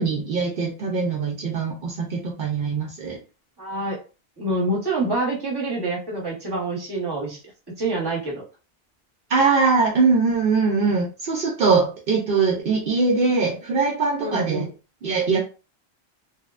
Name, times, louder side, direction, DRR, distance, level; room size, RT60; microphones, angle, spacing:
voice 1, 0.0-3.2 9.3-14.7 15.0-15.4, right 4 dB, 65° right, -1 dB, 0.7 m, -22 dB
voice 2, 3.6-4.0 4.4-7.4 7.8-8.4 14.2-14.7, right 2 dB, 25° right, -3 dB, 0.9 m, -26 dB
2.8 x 2.1 x 2.4 m, 0.34 s
omnidirectional pair, 1.0 m